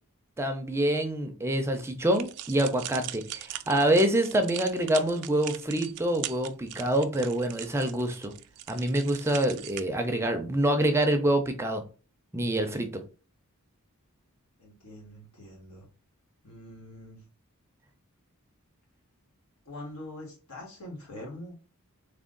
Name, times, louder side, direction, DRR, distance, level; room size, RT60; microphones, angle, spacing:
voice 1, 0.4-8.3 8.7-11.8 12.3-13.0, right 1 dB, 10° right, 6 dB, 0.4 m, -26 dB
sound 1, 2.1-9.8, right 13 dB, 85° right, 0.4 m, -41 dB
voice 2, 14.6-15.9 16.4-17.2 19.6-21.6, left 1 dB, 90° left, -1 dB, 1.6 m, -44 dB
3.5 x 2.2 x 3.7 m, 0.35 s
head